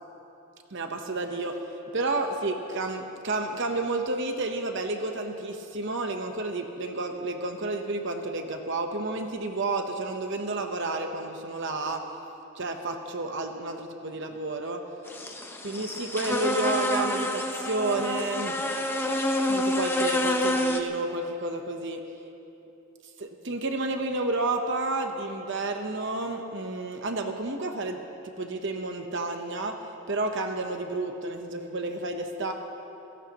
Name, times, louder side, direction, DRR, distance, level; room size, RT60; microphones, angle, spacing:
voice 1, 0.7-1.6 1.9-12.0 12.6-14.8 15.6-18.6 19.5-22.0 23.2-29.8 30.1-32.5, right 2 dB, 55° right, 4 dB, 0.9 m, -31 dB
sound 1, 15.1-20.8, left 1 dB, 10° left, 0.7 m, -28 dB
27.0 x 17.5 x 3.0 m, 2.9 s
head